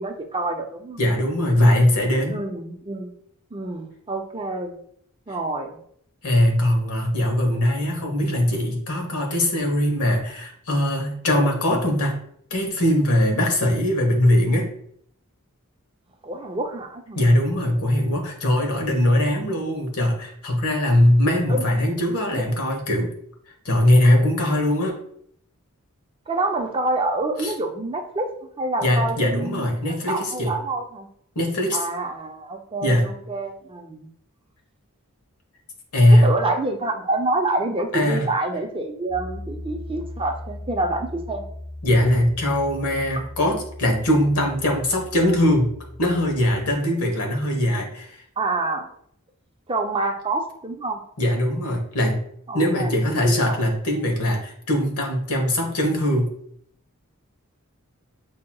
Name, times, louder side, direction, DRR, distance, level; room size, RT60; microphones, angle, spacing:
voice 1, 0.0-1.0 2.3-3.1 3.5-4.7 5.3-5.8 16.2-17.2 21.5-21.7 22.3-22.4 26.3-31.1 31.7-34.1 36.1-41.4 43.2-43.3 48.4-48.9 49.7-51.0 52.5-53.6, right 2 dB, 25° right, 4 dB, 0.5 m, -27 dB
voice 2, 1.0-2.4 6.2-12.2 12.5-14.7 17.1-23.1 23.6-25.0 27.4-27.5 28.8-30.5 31.3-31.8 32.8-33.1 35.9-36.3 37.9-38.3 41.8-45.7 46.0-48.2 51.2-52.2 52.5-56.3, left 1 dB, 90° left, 2 dB, 1.1 m, -21 dB
Piano, 39.1-46.8, left 1 dB, 35° left, 1.0 m, -38 dB
7.2 x 2.8 x 2.3 m, 0.67 s
head